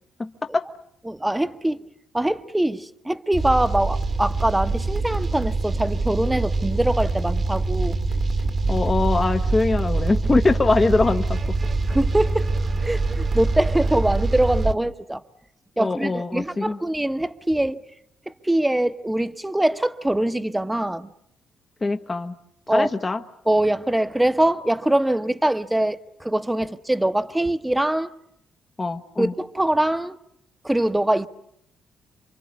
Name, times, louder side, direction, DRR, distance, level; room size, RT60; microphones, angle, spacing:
voice 1, 0.2-0.7 8.7-11.4 15.8-16.8 21.8-22.4 22.7-23.2 28.8-29.3, left 3 dB, 25° left, 1.0 m, -22 dB
voice 2, 1.1-1.8 2.1-8.0 11.9-12.5 12.8-15.2 15.8-17.8 18.3-21.1 22.7-22.9 23.5-28.1 29.2-30.2 30.6-31.3, right 1 dB, 10° right, 1.1 m, -23 dB
sound 1, 3.3-14.7, right 3 dB, 40° right, 1.6 m, -24 dB
28.5 x 24.5 x 8.4 m
cardioid pair, 90°, 0 cm